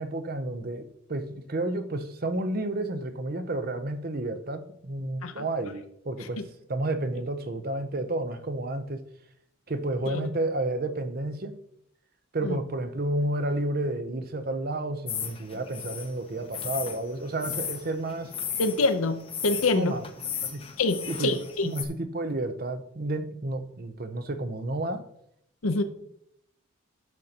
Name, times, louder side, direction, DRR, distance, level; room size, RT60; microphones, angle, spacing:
voice 1, 0.0-6.4 6.7-9.0 9.7-11.5 12.3-18.3 19.7-20.0 20.4-20.6 21.0-21.4 21.6-25.0, right 2 dB, 45° right, 10 dB, 0.6 m, -31 dB
sound 1, 15.1-21.8, left 8 dB, 25° left, 0.7 m, -36 dB
voice 2, 18.6-20.0 20.8-21.7 25.6-25.8, left 3 dB, 80° left, 10 dB, 0.7 m, -26 dB
10.5 x 6.5 x 2.9 m, 0.74 s
head